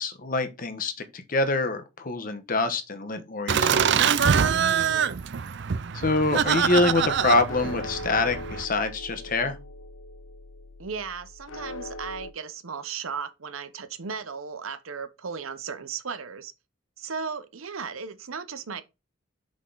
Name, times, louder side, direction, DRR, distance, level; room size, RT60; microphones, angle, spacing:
voice 1, 0.0-3.9 5.9-9.6, left 3 dB, 45° left, 1.0 m, -25 dB
Laughter, 3.5-8.6, right 7 dB, 60° right, 0.5 m, -24 dB
voice 2, 4.5-5.2 10.8-16.5 17.0-18.8, right 5 dB, 90° right, 0.9 m, -36 dB
sound 1, 6.4-12.3, left 1 dB, 75° left, 0.6 m, -40 dB
6.0 x 5.0 x 3.9 m
head